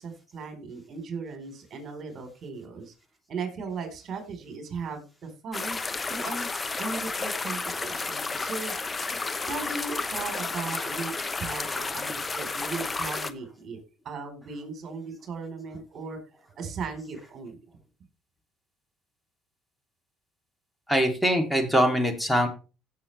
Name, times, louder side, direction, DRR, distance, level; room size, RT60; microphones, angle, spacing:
voice 1, 0.0-2.9 3.3-5.8 6.1-6.5 6.8-8.7 9.5-13.8 14.0-16.2 16.6-17.6, right 4 dB, 45° right, 5 dB, 4.0 m, -37 dB
sound 1, 5.5-13.3, left 3 dB, 25° left, 0.9 m, -32 dB
voice 2, 20.9-22.5, equal, 5° left, 5 dB, 2.9 m, -23 dB
16.5 x 6.5 x 3.3 m, 0.32 s
supercardioid pair, 90°, 0 cm